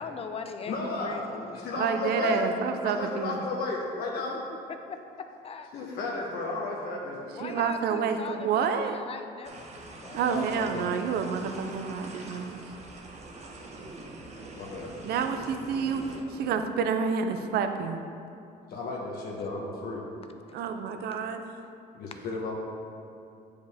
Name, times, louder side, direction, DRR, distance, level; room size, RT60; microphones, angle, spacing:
voice 1, 0.0-1.9 4.7-5.7 7.3-10.3 20.5-20.6 21.1-21.2, left 5 dB, 35° left, 7 dB, 0.5 m, -41 dB
voice 2, 0.7-2.4 2.8-4.4 5.7-7.3 10.3-10.9 14.5-14.9 18.7-20.0 21.9-22.5, left 2 dB, 70° left, -3 dB, 1.1 m, -33 dB
voice 3, 1.8-3.4 7.4-9.0 10.1-12.6 15.0-16.0 16.3-18.0 20.5-21.5, right 6 dB, 70° right, 7 dB, 0.6 m, -29 dB
sound 1, 9.4-16.2, right 2 dB, 40° right, 1.0 m, -44 dB
9.3 x 5.1 x 3.5 m, 2.5 s
cardioid pair, 110°, 17 cm